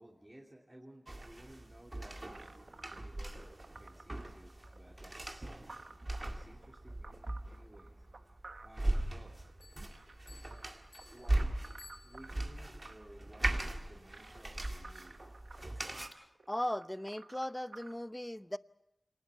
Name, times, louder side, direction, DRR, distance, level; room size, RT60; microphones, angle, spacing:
voice 1, 0.0-2.3 2.9-3.3 3.8-5.5 6.2-9.4 11.1-11.6 12.0-15.2, right 1 dB, 20° right, -1 dB, 2.8 m, -57 dB
sound 1, 1.1-16.1, right 1 dB, 35° right, 2.0 m, -39 dB
sound 2, 2.3-17.9, right 3 dB, 75° right, 1.3 m, -55 dB
sound 3, 9.6-12.6, left 3 dB, 75° left, 6.3 m, -59 dB
voice 2, 16.1-18.6, left 1 dB, 15° left, 14 dB, 0.7 m, -38 dB
26.0 x 19.5 x 6.9 m, 0.83 s
wide cardioid pair, 55°, 0 cm